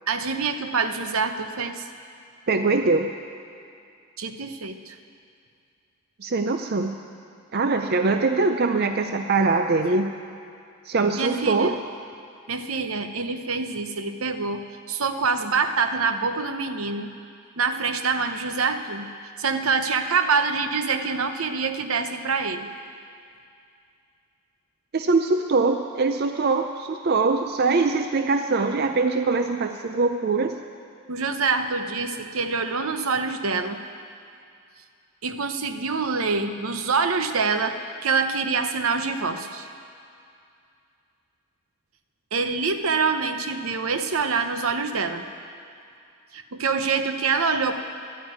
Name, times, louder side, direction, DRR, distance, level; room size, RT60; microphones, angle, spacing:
voice 1, 0.1-1.8 4.2-4.9 11.2-11.7 12.5-17.1 17.6-19.1 19.4-22.7 31.1-33.8 35.2-37.8 38.0-39.7 42.3-45.2 46.3-47.7, right 4 dB, 70° right, 8 dB, 0.8 m, -25 dB
voice 2, 2.5-3.1 6.2-6.9 7.5-10.1 10.9-11.8 24.9-30.5, right 3 dB, 45° right, 6 dB, 0.5 m, -22 dB
12.5 x 9.4 x 9.5 m, 2.4 s
head